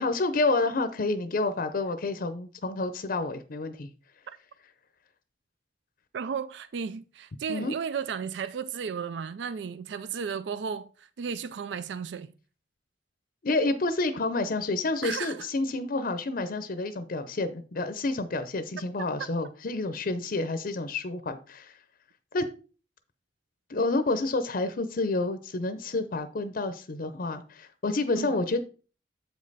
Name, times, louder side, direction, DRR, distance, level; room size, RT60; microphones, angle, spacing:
voice 1, 0.0-3.9 7.5-7.7 13.4-21.8 22.3-22.4 23.7-28.6, left 2 dB, 55° left, 0.6 m, -29 dB
voice 2, 6.1-12.3 15.0-15.5 28.1-28.4, right 6 dB, 70° right, 0.4 m, -34 dB
7.7 x 5.2 x 4.0 m
head